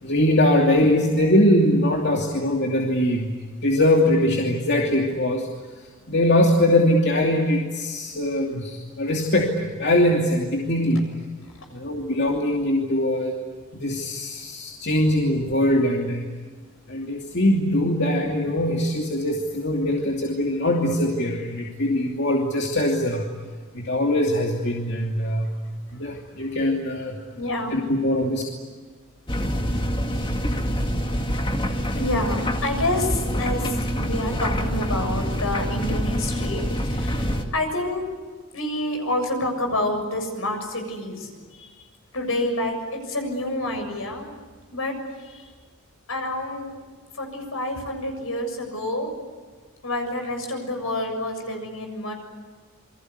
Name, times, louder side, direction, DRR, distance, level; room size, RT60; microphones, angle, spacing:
voice 1, 0.0-3.3 3.6-5.5 6.1-11.0 11.7-13.4 13.7-16.2 16.9-23.2 23.7-25.5 25.9-27.2 27.7-28.4, left 1 dB, 50° left, 0 dB, 2.8 m, -22 dB
voice 2, 11.4-11.8 27.3-27.8 32.0-38.1 38.5-41.7 42.1-42.8 43.0-44.3 44.7-44.9 45.2-45.5 46.1-46.7 47.1-49.1 49.8-52.1, left 1 dB, 75° left, 4 dB, 7.1 m, -28 dB
sound 1, 29.3-37.5, equal, 25° left, 2.1 m, -26 dB
28.0 x 23.5 x 8.3 m, 1.5 s
head